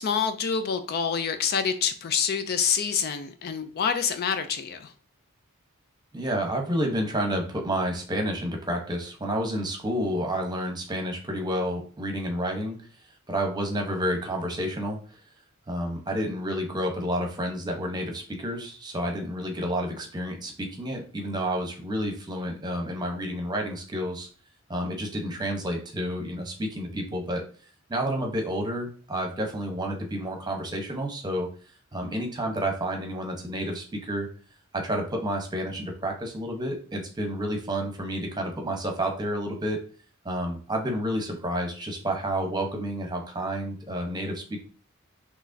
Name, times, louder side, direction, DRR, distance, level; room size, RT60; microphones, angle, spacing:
voice 1, 0.0-4.9, left 6 dB, 45° left, 9 dB, 0.4 m, -27 dB
voice 2, 6.1-12.8 13.3-15.0 15.7-24.3 24.7-27.4 27.9-31.5 31.9-34.3 34.7-39.8 40.2-44.6, equal, 20° right, 2 dB, 0.9 m, -30 dB
6.0 x 3.1 x 2.7 m, 0.41 s
head